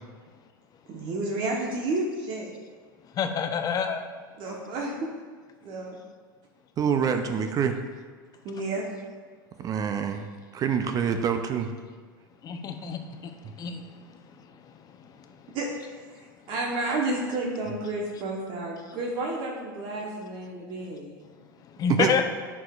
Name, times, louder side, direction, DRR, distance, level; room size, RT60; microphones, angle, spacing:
voice 1, 0.9-2.5 4.4-5.1 5.6-6.0 7.0-7.5 8.4-8.9 15.5-16.0 16.5-21.2, right 2 dB, 50° right, -1 dB, 1.1 m, -31 dB
voice 2, 3.2-4.1 12.4-13.0 13.6-13.8 21.8-22.2, left 6 dB, 35° left, 6 dB, 0.6 m, -26 dB
voice 3, 6.8-7.7 9.6-10.3 10.5-11.7 22.0-22.1, right 7 dB, 35° right, 7 dB, 0.5 m, -26 dB
10.5 x 4.8 x 2.4 m, 1.5 s
hypercardioid pair, 95°, 11 cm